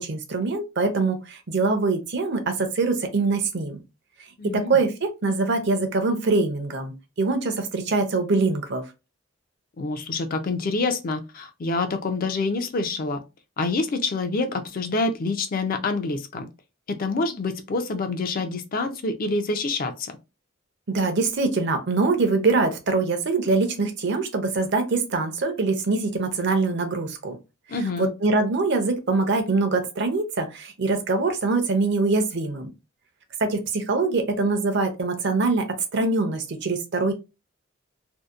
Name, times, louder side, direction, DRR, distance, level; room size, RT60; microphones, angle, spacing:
voice 1, 0.0-3.8 4.4-8.8 20.9-27.4 28.0-32.7 33.4-35.7 35.9-37.1, right 3 dB, 55° right, 0.5 m, -23 dB
voice 2, 4.4-4.8 9.8-13.2 13.6-16.5 16.9-20.1 27.7-28.1, left 3 dB, 45° left, 0.4 m, -27 dB
2.7 x 2.0 x 2.3 m
head